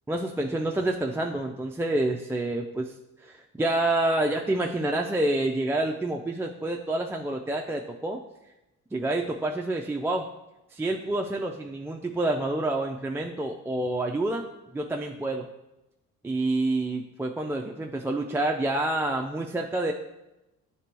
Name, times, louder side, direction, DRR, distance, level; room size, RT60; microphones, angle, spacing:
voice 1, 0.1-2.9 3.2-8.2 8.9-10.3 10.7-15.5 16.2-19.9, right 2 dB, 10° right, 0 dB, 0.3 m, -28 dB
9.5 x 3.3 x 3.0 m, 0.97 s
cardioid pair, 90°, 30 cm